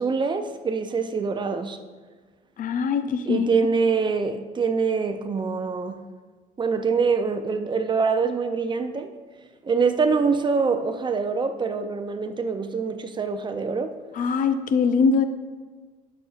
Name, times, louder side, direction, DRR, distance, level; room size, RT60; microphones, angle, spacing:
voice 1, 0.0-1.8 3.3-6.0 6.6-9.1 9.6-14.0, right 5 dB, 25° right, 0.5 m, -24 dB
voice 2, 2.6-3.5 14.2-15.2, left 5 dB, 55° left, 0.5 m, -22 dB
12.0 x 6.3 x 2.4 m
cardioid pair, 110°, 17 cm